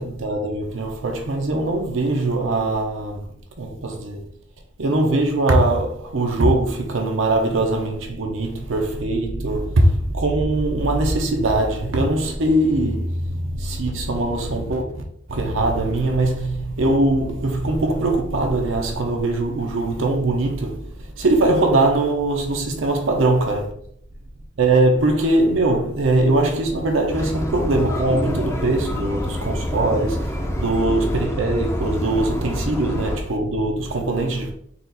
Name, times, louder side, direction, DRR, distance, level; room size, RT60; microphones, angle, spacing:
voice 1, 0.0-3.3 3.6-4.2 4.8-15.0 15.3-23.7 24.6-34.5, right 2 dB, 75° right, 0.7 m, -21 dB
sound 1, 27.1-33.2, left 1 dB, 15° left, 0.6 m, -27 dB
4.1 x 2.5 x 4.0 m
head